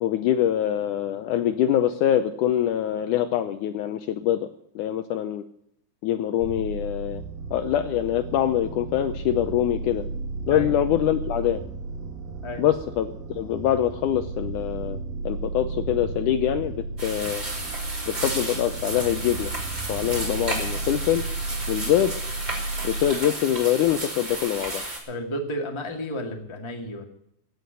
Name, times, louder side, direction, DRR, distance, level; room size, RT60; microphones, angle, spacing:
voice 1, 0.0-4.5 4.8-5.4 6.0-7.2 7.5-10.0 10.5-11.6 12.6-15.0 15.3-16.7 17.0-17.4 18.1-19.5 19.9-21.2 21.7-22.1 22.8-24.8, left 11 dB, 75° left, 9 dB, 2.0 m, -24 dB
sound 1, 6.4-23.1, right 3 dB, 85° right, 3.4 m, -34 dB
sound 2, 17.0-25.0, right 2 dB, 20° right, 3.9 m, -33 dB
voice 2, 25.1-27.0, left 1 dB, 10° left, 2 dB, 1.5 m, -32 dB
16.0 x 7.1 x 9.1 m, 0.70 s
omnidirectional pair, 4.0 m